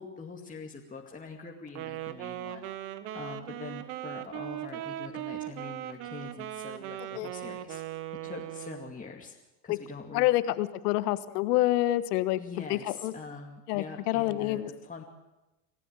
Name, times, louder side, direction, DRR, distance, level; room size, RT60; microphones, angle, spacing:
voice 1, 0.0-7.8 8.2-9.3 9.6-10.3 12.4-15.0, left 4 dB, 15° left, 0 dB, 2.4 m, -44 dB
Wind instrument woodwind instrument, 1.7-8.9, right 13 dB, 70° right, 1.7 m, -39 dB
voice 2, 10.1-12.4 12.7-13.1 13.7-14.7, left 16 dB, 80° left, 15 dB, 1.5 m, -27 dB
26.0 x 14.5 x 9.0 m, 1.0 s
supercardioid pair, 105°, 47 cm